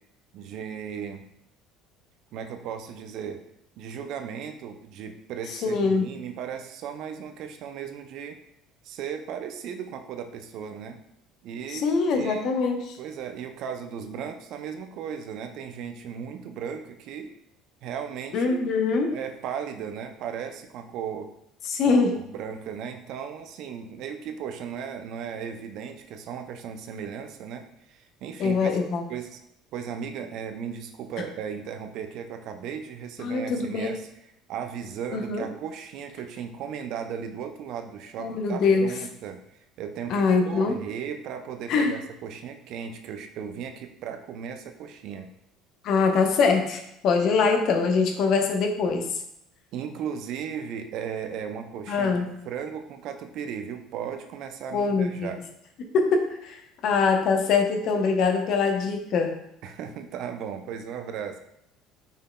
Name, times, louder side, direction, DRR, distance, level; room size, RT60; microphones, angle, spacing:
voice 1, 0.3-1.3 2.3-3.4 3.8-8.4 8.8-11.0 11.4-11.9 12.1-12.5 13.0-17.3 17.8-18.6 19.1-21.3 21.8-22.0 22.3-28.8 29.1-29.4 29.7-34.0 34.5-39.4 39.8-45.3 49.7-55.4 59.6-61.4, right 7 dB, 55° right, 7 dB, 0.5 m, -36 dB
voice 2, 5.5-6.1 11.7-13.0 18.3-19.1 21.7-22.2 28.4-29.0 33.2-34.0 35.1-35.5 38.2-38.9 40.1-40.8 41.7-42.0 45.8-49.2 51.9-52.3 54.7-55.3 55.9-59.4, left 4 dB, 55° left, 4 dB, 0.7 m, -23 dB
5.5 x 3.6 x 2.2 m, 0.77 s
figure-of-eight pair, 60°, 0 cm